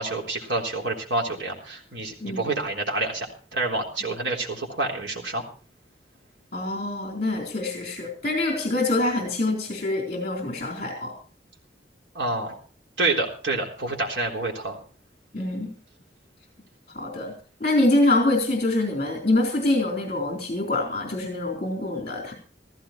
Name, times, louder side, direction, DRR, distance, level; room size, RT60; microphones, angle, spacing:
voice 1, 0.0-5.4 12.1-12.5 13.0-14.7, right 2 dB, 90° right, 0 dB, 3.7 m, -28 dB
voice 2, 6.5-11.1 15.3-15.7 16.9-17.3 17.6-22.3, left 2 dB, 40° left, 2 dB, 3.9 m, -25 dB
15.5 x 14.5 x 4.4 m, 0.38 s
head